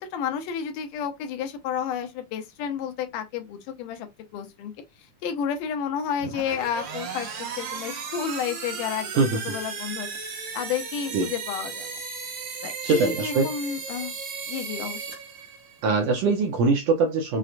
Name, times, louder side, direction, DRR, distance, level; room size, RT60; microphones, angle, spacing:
voice 1, 0.1-4.1 4.3-4.7 5.2-10.1 10.5-12.0 12.6-14.1 14.5-15.1, left 8 dB, 90° left, 2.3 m, -31 dB
sound 1, 6.2-15.9, right 5 dB, 55° right, 2.2 m, -35 dB
voice 2, 9.2-9.6 11.1-11.3 12.8-13.5 15.8-17.4, right 4 dB, 80° right, 1.5 m, -22 dB
6.0 x 2.1 x 2.4 m
omnidirectional pair, 3.6 m